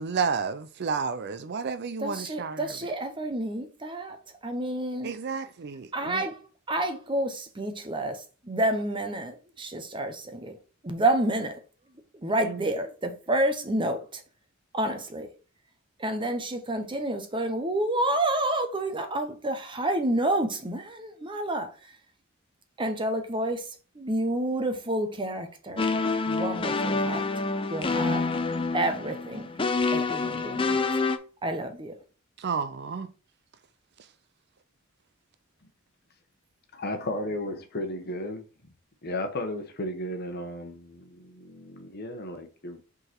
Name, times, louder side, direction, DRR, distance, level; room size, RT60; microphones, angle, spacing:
voice 1, 0.0-2.6 5.0-6.3 12.4-12.6 32.4-33.1, right 5 dB, 55° right, 0.5 m, -31 dB
voice 2, 2.0-4.2 4.4-5.1 5.9-6.4 6.7-10.6 10.8-11.6 12.1-14.2 14.7-15.3 16.0-21.7 22.8-25.9 26.2-27.3 27.7-28.3 28.7-29.5 29.9-30.8 31.4-32.0, right 1 dB, 25° right, 0.9 m, -29 dB
sound 1, 25.8-31.2, left 3 dB, 25° left, 0.6 m, -27 dB
voice 3, 36.8-38.4 39.0-42.8, left 1 dB, 50° left, 1.1 m, -34 dB
5.4 x 4.0 x 4.4 m
head